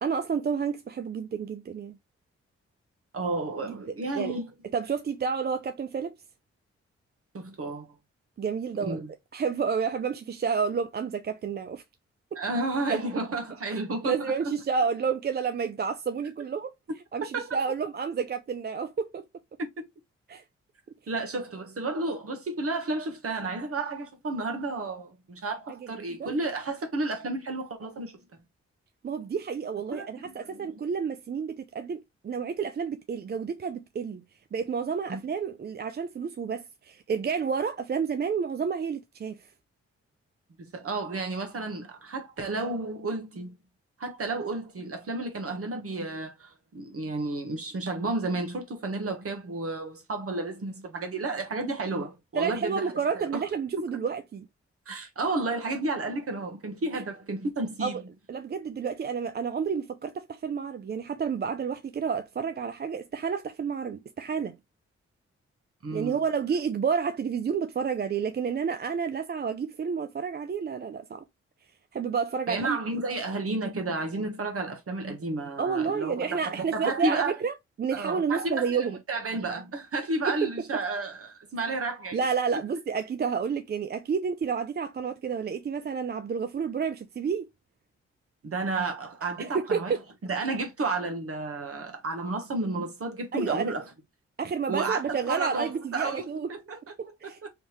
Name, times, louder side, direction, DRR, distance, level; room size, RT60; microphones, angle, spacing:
voice 1, 0.0-2.0 3.6-4.3 4.7-6.1 8.4-9.0 9.3-11.8 12.3-12.4 12.9-13.0 13.7-16.7 17.1-19.2 20.3-20.4 26.1-26.3 29.0-34.2 34.5-39.4 52.3-54.5 56.9-57.0 57.8-58.0 58.3-64.6 65.9-71.2 71.9-72.8 75.6-79.0 80.3-80.5 82.1-87.5 89.4-90.0 93.3-93.7 94.4-96.5 97.0-97.4, right 6 dB, 35° right, 0.4 m, -30 dB
voice 2, 3.1-4.4 7.3-7.9 8.8-9.1 12.3-14.3 17.3-17.6 19.6-19.8 21.1-28.2 29.9-30.8 35.1-35.2 40.6-43.5 44.0-53.4 53.8-53.9 54.9-58.0 65.8-66.2 72.5-77.4 77.9-82.2 82.5-82.6 88.4-90.0 90.2-93.8 94.7-96.8 97.2-97.5, right 2 dB, 50° right, 1.2 m, -32 dB
3.4 x 2.7 x 3.1 m
supercardioid pair, 45°, 29 cm